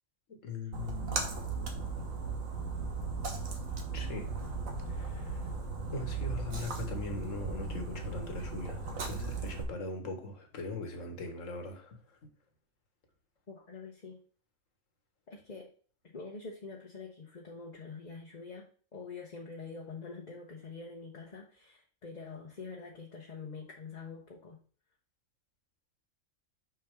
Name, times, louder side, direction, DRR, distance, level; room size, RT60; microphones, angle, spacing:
voice 1, 0.3-1.9 3.9-4.3 4.9-5.4 5.9-12.0, left 2 dB, 70° left, 1.8 m, -41 dB
Splash splatter, 0.7-9.6, right 4 dB, 80° right, 1.7 m, -37 dB
voice 2, 13.5-14.2 15.3-15.7 16.0-24.6, left 4 dB, 35° left, 1.0 m, -45 dB
6.4 x 5.8 x 3.6 m
omnidirectional pair, 1.4 m